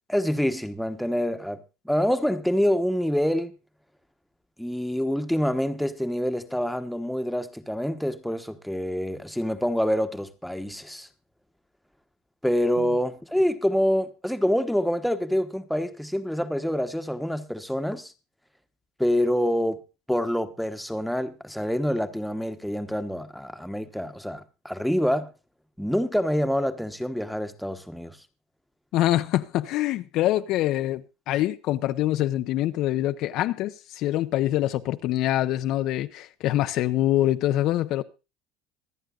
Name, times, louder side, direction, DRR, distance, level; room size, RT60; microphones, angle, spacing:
voice 1, 0.1-3.6 4.6-11.1 12.4-18.1 19.0-19.8 20.1-25.3 25.8-28.2, equal, ahead, 1.1 m, -26 dB
voice 2, 28.9-38.0, left 14 dB, 55° left, 0.8 m, -25 dB
25.5 x 9.2 x 2.4 m
cardioid pair, 145°, 0 cm